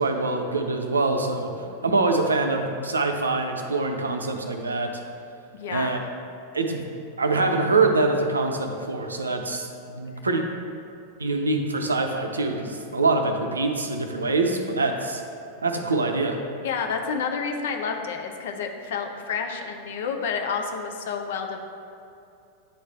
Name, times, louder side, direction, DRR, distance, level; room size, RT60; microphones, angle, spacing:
voice 1, 0.0-1.5 1.8-4.9 5.7-6.0 6.5-6.9 7.2-10.4 11.2-15.2 15.6-16.4, right 3 dB, 75° right, 4 dB, 0.5 m, -24 dB
voice 2, 5.5-6.1 10.2-10.3 16.6-21.6, left 6 dB, 55° left, 4 dB, 0.5 m, -30 dB
9.3 x 3.2 x 3.3 m, 2.7 s
figure-of-eight pair, 90°, 0 cm